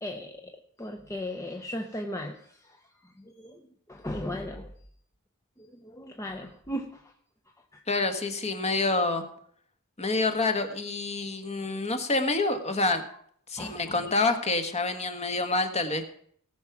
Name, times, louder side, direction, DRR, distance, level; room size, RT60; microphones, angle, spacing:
voice 1, 0.0-3.6 3.9-4.7 5.6-7.1 7.7-7.8 13.6-14.0, left 1 dB, 15° left, 3 dB, 0.8 m, -37 dB
voice 2, 7.9-9.3 10.0-13.0 13.5-16.0, left 3 dB, 30° left, 6 dB, 1.3 m, -27 dB
18.0 x 6.0 x 5.9 m, 0.64 s
head